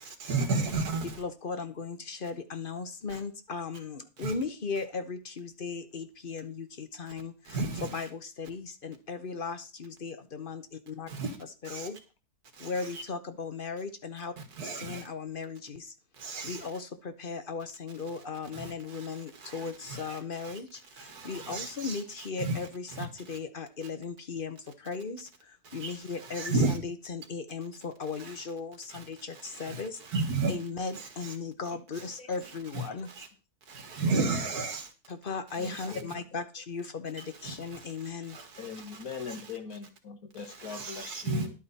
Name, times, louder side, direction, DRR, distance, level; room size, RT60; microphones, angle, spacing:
voice 1, 0.2-1.2 4.2-4.3 7.5-8.1 11.1-11.3 11.7-11.9 12.8-13.0 14.6-15.0 16.2-16.6 18.5-18.7 19.5-20.2 20.4-20.5 21.0-22.0 22.4-22.6 22.9-23.1 25.8-25.9 26.2-26.8 28.2-28.3 28.9-29.0 29.6-29.8 30.1-30.6 30.9-31.3 32.4-32.9 33.2-33.3 33.7-34.8 35.6-36.0 37.4-37.5 38.3-38.4 39.3-39.4 40.6-41.5, right 3 dB, 80° right, 2.2 m, -32 dB
voice 2, 1.2-11.1 11.7-12.0 12.6-14.3 14.6-15.9 16.4-30.0 30.5-33.1 35.1-38.4, left 4 dB, 40° left, 1.0 m, -37 dB
voice 3, 31.7-32.3 32.9-33.0 35.6-36.1 38.6-41.5, left 5 dB, 65° left, 1.9 m, -42 dB
11.0 x 8.6 x 4.2 m
omnidirectional pair, 1.6 m